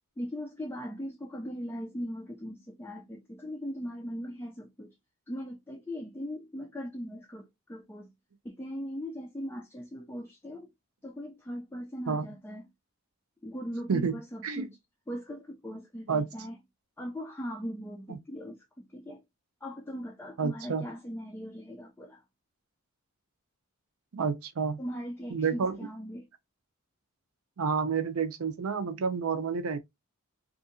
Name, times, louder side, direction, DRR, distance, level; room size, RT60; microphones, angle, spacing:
voice 1, 0.2-4.9 5.3-8.1 8.4-10.7 11.0-12.7 13.4-14.8 15.1-16.5 17.0-19.2 19.6-22.2 24.8-26.3, equal, 10° left, 0.4 m, -39 dB
voice 2, 13.9-14.7 16.1-16.3 18.1-18.2 20.4-20.8 24.1-24.8 25.3-25.8 27.6-29.8, right 5 dB, 80° right, 0.6 m, -29 dB
2.7 x 2.5 x 2.5 m
head